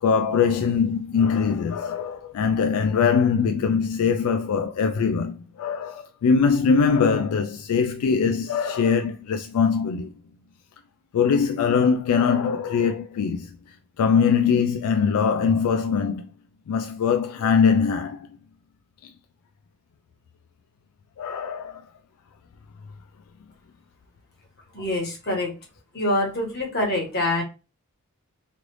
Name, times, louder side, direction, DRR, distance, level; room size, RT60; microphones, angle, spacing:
voice 1, 0.0-10.1 11.1-13.5 14.0-16.3 16.7-18.3 21.2-21.8, left 6 dB, 75° left, 0.3 m, -22 dB
voice 2, 24.7-25.6 25.9-27.4, left 1 dB, 45° left, 1.3 m, -25 dB
3.1 x 2.5 x 3.1 m
head